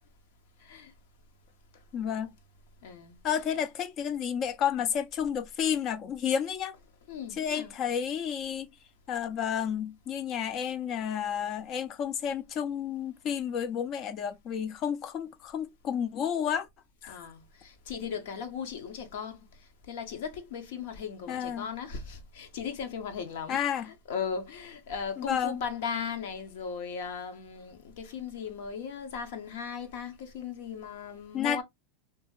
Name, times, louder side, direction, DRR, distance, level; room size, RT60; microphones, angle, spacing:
voice 1, 0.6-0.9 2.8-3.4 7.1-7.7 17.1-19.5 19.9-31.6, left 6 dB, 75° left, 0.9 m, -37 dB
voice 2, 1.9-2.3 3.2-6.8 7.4-8.7 9.1-16.7 17.0-17.2 21.3-21.7 23.5-23.9 25.2-25.6 31.3-31.6, left 8 dB, 40° left, 0.5 m, -31 dB
2.8 x 2.7 x 2.3 m
supercardioid pair, 125°, 0 cm